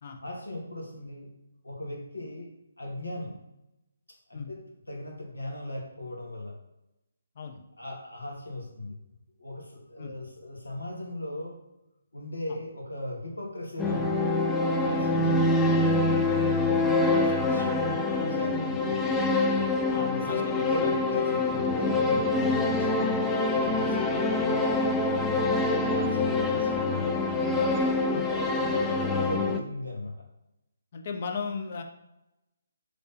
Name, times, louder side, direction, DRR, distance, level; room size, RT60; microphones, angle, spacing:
voice 1, 0.2-1.3 1.6-2.5 2.8-3.3 4.3-4.6 4.9-6.5 7.8-8.9 9.4-11.6 12.1-14.1 14.8-15.3 15.6-16.2 16.6-19.0 20.0-25.3 25.6-27.2 28.0-30.1, left 1 dB, 85° left, -1 dB, 1.3 m, -37 dB
sound 1, 13.8-29.6, left 2 dB, 10° left, 0.3 m, -25 dB
voice 2, 19.9-21.0 24.1-24.2 26.1-26.3 28.1-28.3 30.9-31.8, left 5 dB, 45° left, 4 dB, 0.6 m, -36 dB
3.3 x 2.8 x 4.1 m, 0.89 s
figure-of-eight pair, 145°, 0 cm